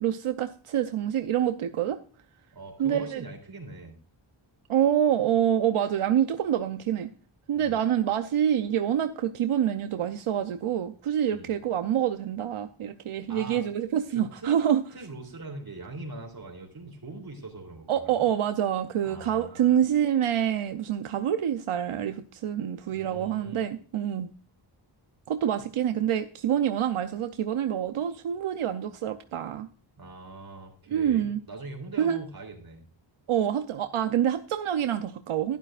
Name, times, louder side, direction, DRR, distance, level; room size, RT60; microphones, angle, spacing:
voice 1, 0.0-2.0 2.8-3.2 4.7-7.1 7.5-14.8 17.9-24.3 25.3-29.7 30.9-31.4 32.0-32.2 33.3-35.6, right 10 dB, 85° right, 8 dB, 0.7 m, -26 dB
voice 2, 2.5-3.9 7.5-7.9 11.3-11.5 13.3-13.6 14.1-14.6 14.9-18.3 19.0-19.8 22.9-23.6 25.6-25.7 30.0-32.8, right 3 dB, 45° right, 2 dB, 3.3 m, -42 dB
12.0 x 11.5 x 2.5 m, 0.41 s
wide cardioid pair, 105°, 49 cm